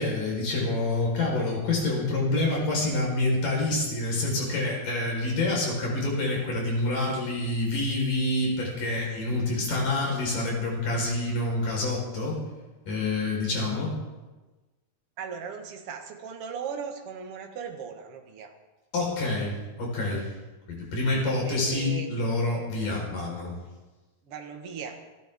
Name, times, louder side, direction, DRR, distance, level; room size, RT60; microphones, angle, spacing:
voice 1, 0.0-12.4 12.9-14.0 18.9-20.3 20.7-23.5, left 2 dB, 75° left, -2 dB, 6.2 m, -27 dB
voice 2, 15.2-18.5 21.5-22.1 24.3-25.0, right 6 dB, 50° right, 3 dB, 2.1 m, -37 dB
27.5 x 13.5 x 3.7 m, 1.2 s
omnidirectional pair, 3.8 m